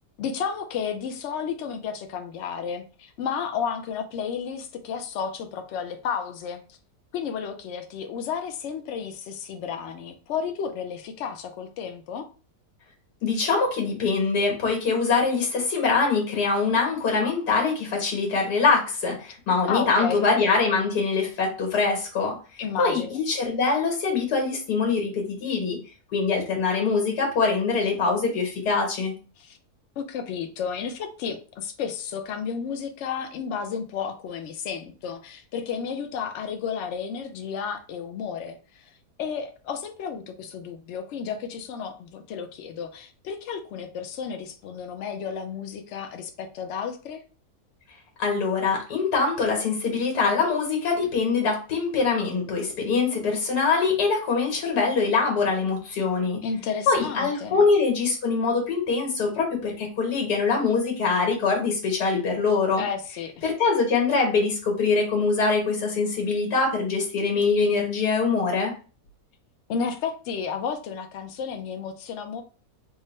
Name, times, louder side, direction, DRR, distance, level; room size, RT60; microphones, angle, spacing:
voice 1, 0.2-6.8 7.1-12.3 19.7-20.3 22.6-23.1 29.4-29.6 30.0-38.9 39.2-47.2 56.4-57.6 62.8-63.5 69.7-72.4, left 6 dB, 65° left, 0.7 m, -32 dB
voice 2, 13.2-22.4 22.8-25.8 26.1-29.1 48.2-56.4 56.9-62.9 63.4-68.7, left 4 dB, 85° left, 1.8 m, -23 dB
3.7 x 2.1 x 4.0 m
omnidirectional pair, 1.7 m